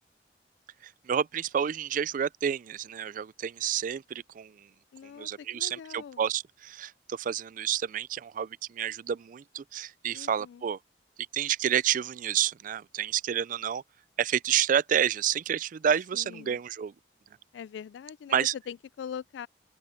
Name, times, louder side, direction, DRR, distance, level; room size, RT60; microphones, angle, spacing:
voice 1, 0.8-4.5 5.2-10.8 11.3-13.8 14.2-16.9 18.3-18.5, right 9 dB, 50° right, 0.3 m, -29 dB
voice 2, 4.9-6.3 10.1-10.6 16.1-16.6 17.5-19.5, left 8 dB, 85° left, 0.3 m, -42 dB
open air
head